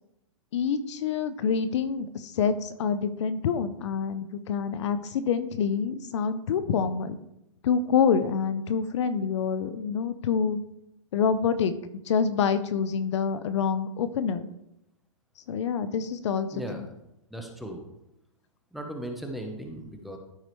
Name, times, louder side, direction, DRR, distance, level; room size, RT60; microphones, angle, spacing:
voice 1, 0.5-7.2 7.6-10.6 11.1-11.7 12.1-14.5 15.5-16.6, left 6 dB, 60° left, 12 dB, 0.6 m, -26 dB
voice 2, 16.5-16.8 17.3-17.8 18.7-20.2, right 1 dB, ahead, 2 dB, 0.8 m, -37 dB
13.5 x 4.8 x 3.1 m, 0.84 s
hypercardioid pair, 155°, 17 cm